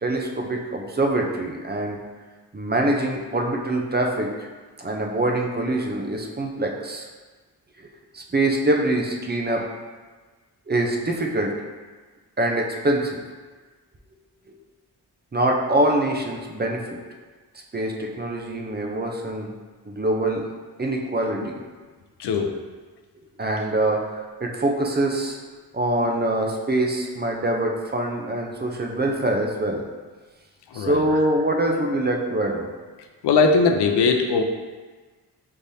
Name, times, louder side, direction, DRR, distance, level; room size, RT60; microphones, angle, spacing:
voice 1, 0.0-2.0 2.5-4.3 4.8-7.0 7.8-7.9 8.1-9.7 10.7-11.5 12.4-13.2 15.3-17.0 17.7-19.5 19.9-20.5 20.8-21.6 23.4-25.4 25.7-29.8 30.7-32.7, right 1 dB, 25° right, 1 dB, 0.6 m, -24 dB
voice 2, 22.2-22.5 30.7-31.0 33.2-34.4, left 4 dB, 90° left, 4 dB, 0.6 m, -19 dB
5.4 x 3.3 x 2.7 m, 1.3 s
wide cardioid pair, 90°, 39 cm